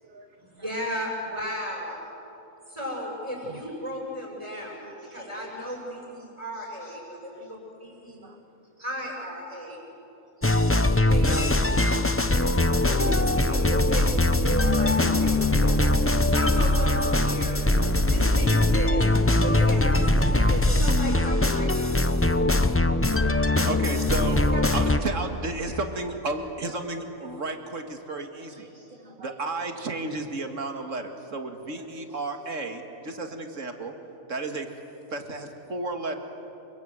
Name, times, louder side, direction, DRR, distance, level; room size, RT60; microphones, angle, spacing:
voice 1, 0.4-2.0 2.7-8.3 8.8-9.8 11.0-11.8 12.8-14.1 14.3-15.9 16.3-17.6 17.9-19.0 19.4-21.9 24.5-24.6 25.7-25.8, equal, 20° right, -1 dB, 6.9 m, -35 dB
voice 2, 4.8-5.6 7.3-7.5 8.2-8.4 23.1-23.6 28.6-29.4, right 3 dB, 40° right, 3 dB, 1.7 m, -49 dB
sound 1, 10.4-25.0, left 2 dB, 10° left, 0.7 m, -22 dB
voice 3, 23.6-24.4 24.7-28.7 29.2-33.9 34.3-34.7 35.1-36.1, right 3 dB, 60° right, 5 dB, 2.4 m, -32 dB
28.5 x 25.5 x 8.0 m, 3.0 s
omnidirectional pair, 1.5 m